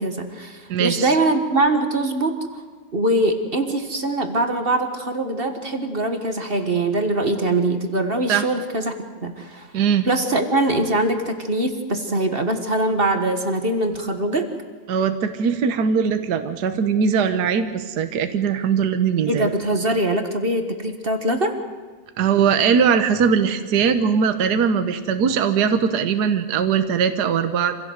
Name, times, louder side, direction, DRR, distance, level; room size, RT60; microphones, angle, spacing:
voice 1, 0.0-2.6 2.9-8.9 9.2-9.7 10.0-14.5 19.3-21.5, right 2 dB, 30° right, 6 dB, 1.6 m, -22 dB
voice 2, 0.7-1.1 8.3-8.4 9.7-10.1 14.9-19.5 22.2-27.7, right 7 dB, 65° right, 9 dB, 1.6 m, -20 dB
26.0 x 16.5 x 8.0 m, 1.5 s
omnidirectional pair, 2.0 m